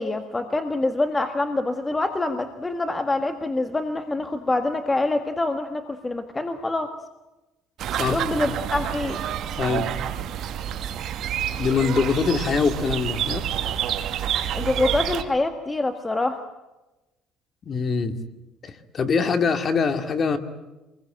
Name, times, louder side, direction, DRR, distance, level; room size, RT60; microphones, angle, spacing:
voice 1, 0.0-6.9 8.0-9.2 14.5-16.4, left 2 dB, 15° left, 8 dB, 1.5 m, -25 dB
sound 1, 7.8-15.2, right 10 dB, 55° right, 2.1 m, -28 dB
voice 2, 9.6-9.9 11.6-13.4 17.6-18.2 18.6-20.4, left 5 dB, 35° left, 9 dB, 2.3 m, -23 dB
26.5 x 21.0 x 9.1 m, 1.0 s
cardioid pair, 140°, 0 cm